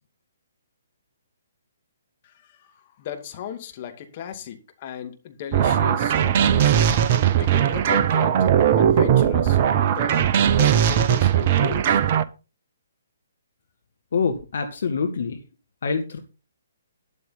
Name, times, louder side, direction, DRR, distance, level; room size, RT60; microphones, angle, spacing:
voice 1, 2.2-6.9 7.4-12.0, left 9 dB, 35° left, 2.4 m, -36 dB
sound 1, 5.5-12.2, right 9 dB, 35° right, 0.9 m, -19 dB
voice 2, 14.1-15.4 15.8-16.2, left 5 dB, 55° left, 1.8 m, -25 dB
12.5 x 11.0 x 4.1 m
figure-of-eight pair, 130°, 0 cm